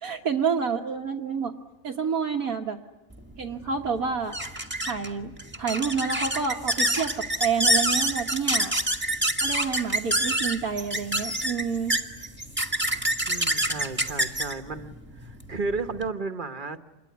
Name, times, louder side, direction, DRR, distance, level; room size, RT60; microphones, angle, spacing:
voice 1, 0.0-1.5 1.8-2.8 3.4-4.4 4.8-8.7 9.4-11.9, right 6 dB, 90° right, -2 dB, 1.9 m, -28 dB
sound 1, 3.2-16.1, right 1 dB, 10° right, 1.6 m, -27 dB
voice 2, 13.3-15.0 15.2-16.8, right 3 dB, 35° right, 8 dB, 1.3 m, -33 dB
27.5 x 22.5 x 9.4 m, 1.0 s
omnidirectional pair, 1.5 m